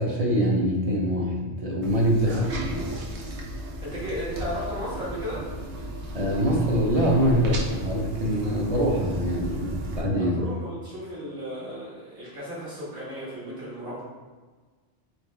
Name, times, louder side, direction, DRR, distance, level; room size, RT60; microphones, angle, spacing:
voice 1, 0.0-2.8 6.1-10.4, equal, 40° right, -2 dB, 0.7 m, -24 dB
sound 1, 1.8-10.0, right 1 dB, 80° right, 1.1 m, -34 dB
voice 2, 3.8-5.5 8.5-8.6 10.2-14.0, equal, 55° right, -8 dB, 1.7 m, -35 dB
4.3 x 3.0 x 3.3 m, 1.4 s
omnidirectional pair, 1.1 m